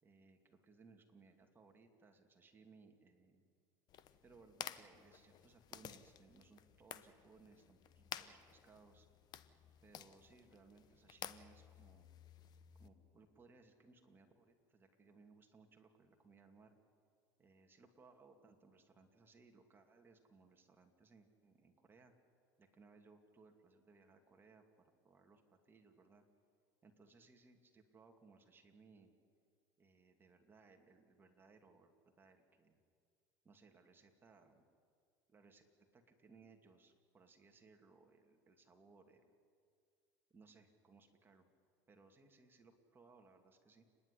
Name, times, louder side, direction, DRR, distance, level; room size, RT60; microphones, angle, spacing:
voice 1, 0.0-3.4 4.2-9.1 9.8-12.1 12.8-16.8 17.4-22.1 22.6-24.6 25.0-26.2 26.8-29.1 29.8-31.9 32.2-32.8 33.4-34.6 35.3-35.7 35.9-39.4 40.3-41.5 41.9-43.8, right 4 dB, 25° right, 4 dB, 2.5 m, -65 dB
sound 1, 3.9-12.9, left 10 dB, 45° left, 1.0 m, -53 dB
29.5 x 10.5 x 10.0 m, 2.2 s
supercardioid pair, 110°, 9 cm